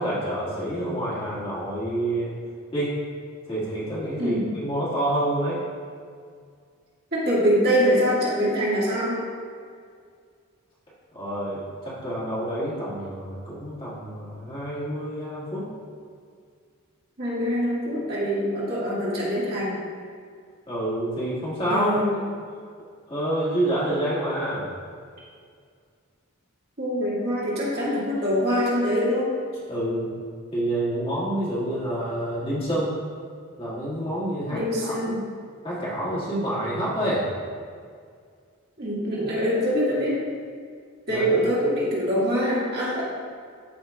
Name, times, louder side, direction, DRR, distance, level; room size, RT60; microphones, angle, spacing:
voice 1, 0.0-2.3 2.7-2.9 3.5-5.6 11.1-15.7 20.7-22.0 22.3-22.4 23.1-24.6 29.7-30.1 30.5-33.0 33.6-35.2 35.6-37.2 41.1-41.3, right 1 dB, 25° left, -8 dB, 1.8 m, -28 dB
voice 2, 4.2-4.5 7.1-9.2 17.2-19.8 21.7-22.2 26.8-29.3 34.5-35.2 38.8-40.2 41.1-43.0, equal, 45° right, -7 dB, 1.8 m, -24 dB
12.5 x 5.3 x 2.3 m, 2.1 s
head